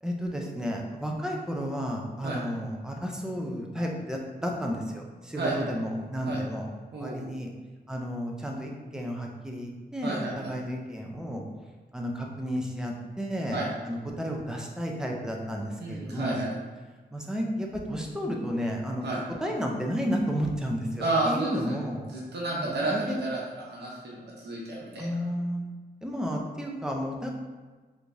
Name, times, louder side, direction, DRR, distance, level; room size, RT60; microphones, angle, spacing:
voice 1, 0.0-6.7 6.9-7.5 7.9-11.4 11.9-13.6 13.8-16.4 17.1-19.1 19.4-22.0 22.6-23.2 25.0-25.6 26.0-27.3, equal, 5° right, 0 dB, 0.4 m, -32 dB
voice 2, 6.9-7.3 10.0-10.5 13.5-13.6 15.8-16.5 19.0-19.2 21.0-21.8 22.1-23.4 23.7-25.1, right 2 dB, 90° right, -4 dB, 0.8 m, -31 dB
3.4 x 3.1 x 2.6 m, 1.3 s
wide cardioid pair, 180°, 17 cm